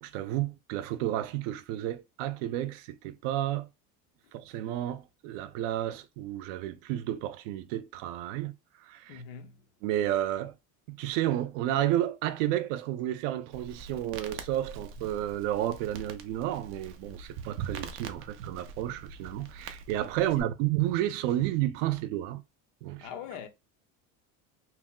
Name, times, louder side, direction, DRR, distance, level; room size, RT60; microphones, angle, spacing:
voice 1, 0.0-3.7 4.3-8.5 8.8-9.2 9.8-10.5 10.9-22.4 22.8-23.1, right 13 dB, 80° right, 0.6 m, -31 dB
voice 2, 9.1-9.6 20.4-20.5 23.0-23.5, left 8 dB, 60° left, 0.7 m, -42 dB
Crackle, 13.5-20.4, right 4 dB, 35° right, 0.4 m, -45 dB
2.9 x 2.0 x 3.6 m
cardioid pair, 155°, 37 cm